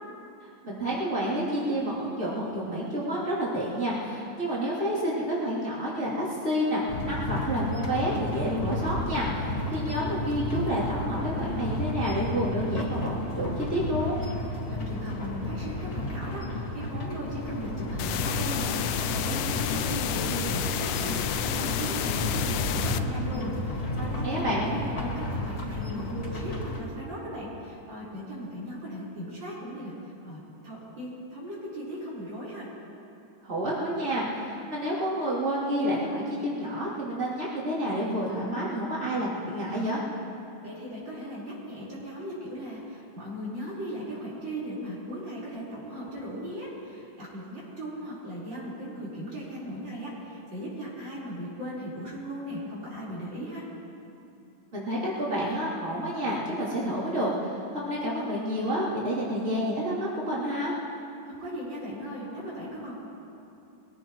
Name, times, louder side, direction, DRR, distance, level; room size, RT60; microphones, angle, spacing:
voice 1, 0.6-14.1 24.2-24.7 33.4-40.0 54.7-60.7, equal, 35° right, -10 dB, 3.4 m, -29 dB
sound 1, 6.9-26.8, left 1 dB, 50° left, 2.5 m, -32 dB
voice 2, 14.7-29.9 30.2-32.7 40.6-53.7 61.2-62.9, equal, 70° right, -8 dB, 5.1 m, -38 dB
sound 2, 18.0-23.0, left 10 dB, 80° left, 1.3 m, -30 dB
22.5 x 17.0 x 3.1 m, 2.8 s
omnidirectional pair, 2.1 m